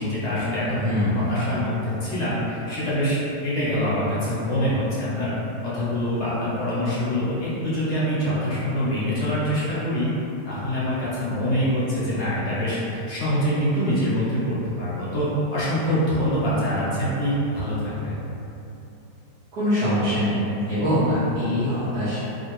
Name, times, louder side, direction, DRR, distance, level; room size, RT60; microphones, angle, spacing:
voice 1, 0.0-0.7 0.9-5.3 5.6-10.1 10.4-18.2, equal, 55° left, -9 dB, 0.8 m, -25 dB
voice 2, 0.7-1.3 19.5-20.4 20.7-22.2, equal, 65° right, -15 dB, 1.4 m, -23 dB
3.5 x 2.5 x 3.0 m, 2.9 s
omnidirectional pair, 2.0 m